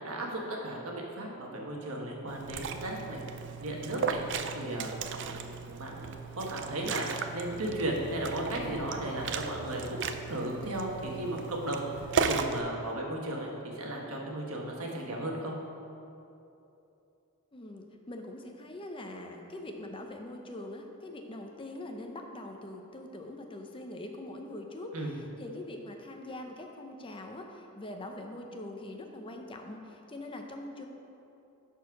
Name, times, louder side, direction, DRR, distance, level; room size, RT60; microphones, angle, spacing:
voice 1, 0.0-3.2 3.5-4.2 4.5-7.1 7.3-10.0 10.3-15.5 24.9-25.1, right 1 dB, 75° right, -1 dB, 1.5 m, -35 dB
Liquid, 2.3-12.6, right 5 dB, 55° right, 0.5 m, -36 dB
voice 2, 17.5-30.8, left 1 dB, 25° left, 3 dB, 0.7 m, -43 dB
10.5 x 4.5 x 6.0 m, 2.8 s
head